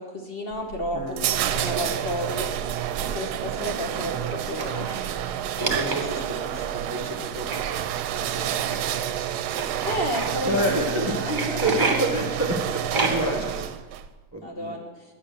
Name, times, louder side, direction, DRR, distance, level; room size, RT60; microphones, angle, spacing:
voice 1, 0.0-2.5 3.1-4.9 9.8-11.8 14.4-14.9, left 1 dB, 40° left, 1 dB, 1.3 m, -31 dB
sound 1, 0.5-14.1, right 10 dB, 80° right, 1.1 m, -29 dB
voice 2, 0.9-1.2 5.7-7.5 7.8-8.8 10.4-11.1 11.6-13.7 14.3-14.8, right 1 dB, 10° right, 1 dB, 1.0 m, -29 dB
rock friction, 1.5-1.7 2.9-3.0 3.3-3.4 4.2-5.1 5.6-6.4 7.4-7.6 8.6-8.8 9.5-10.3 11.3-12.0 12.9-13.4, right 3 dB, 30° right, 1.4 m, -29 dB
9.5 x 8.2 x 6.8 m, 1.2 s
omnidirectional pair, 1.7 m